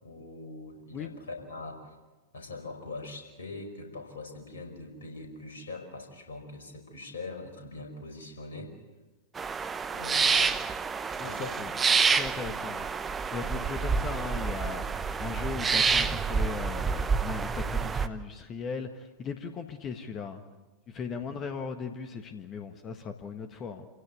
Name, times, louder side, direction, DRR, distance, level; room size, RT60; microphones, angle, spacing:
voice 1, 0.0-2.0 2.3-8.7 9.9-10.6 11.2-11.6 21.2-21.4, left 3 dB, 65° left, 3 dB, 5.4 m, -42 dB
sound 1, 9.4-18.1, right 5 dB, 20° right, 1.0 m, -28 dB
voice 2, 11.2-11.7 12.1-12.9 13.3-20.4 20.9-23.9, left 5 dB, 30° left, 7 dB, 1.6 m, -38 dB
28.0 x 16.5 x 8.5 m, 1.2 s
figure-of-eight pair, 90°, 0 cm